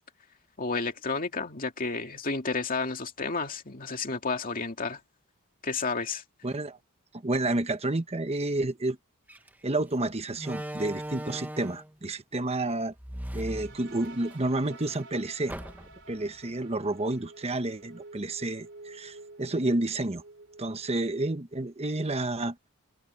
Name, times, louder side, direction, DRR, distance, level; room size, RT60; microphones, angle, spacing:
voice 1, 0.6-5.0 5.6-6.2, left 4 dB, 40° left, 2.4 m, -31 dB
voice 2, 6.4-6.8 7.1-9.0 9.6-12.9 13.3-15.5 16.1-20.2 20.6-22.6, right 2 dB, 30° right, 1.1 m, -30 dB
Slam, 9.3-9.5 10.4-11.9 13.0-14.4 14.7-14.8 15.5-16.1, right 1 dB, 10° right, 1.2 m, -38 dB
sound 1, 13.5-21.2, right 2 dB, 55° right, 3.3 m, -50 dB
head